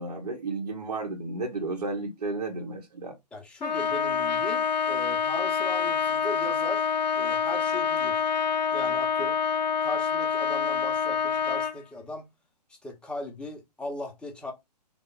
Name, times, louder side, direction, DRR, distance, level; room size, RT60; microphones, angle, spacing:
voice 1, 0.0-3.2, right 3 dB, 70° right, 1.0 m, -33 dB
voice 2, 3.3-8.3 8.7-9.4 9.8-12.3 12.8-14.5, left 1 dB, 5° left, 0.7 m, -38 dB
Trumpet, 3.6-11.8, left 7 dB, 90° left, 0.5 m, -26 dB
3.4 x 2.3 x 3.7 m
figure-of-eight pair, 130°, 21 cm